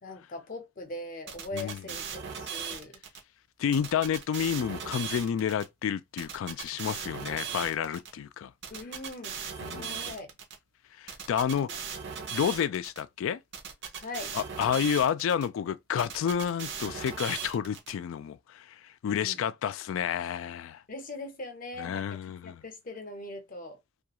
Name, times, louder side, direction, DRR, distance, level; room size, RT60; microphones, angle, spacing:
voice 1, 0.0-3.0 8.7-10.3 11.5-11.8 14.0-14.4 19.0-19.4 20.9-23.8, left 2 dB, 45° left, 0.7 m, -41 dB
sound 1, 1.3-3.2 3.7-5.6 6.2-8.1 8.6-10.6 11.1-13.0 13.5-15.5 16.0-17.9, right 7 dB, 60° right, 0.6 m, -38 dB
voice 2, 3.6-8.5 9.7-10.0 11.0-11.7 12.3-13.4 14.3-20.8 21.8-22.6, left 8 dB, 75° left, 0.3 m, -30 dB
2.3 x 2.3 x 2.9 m
head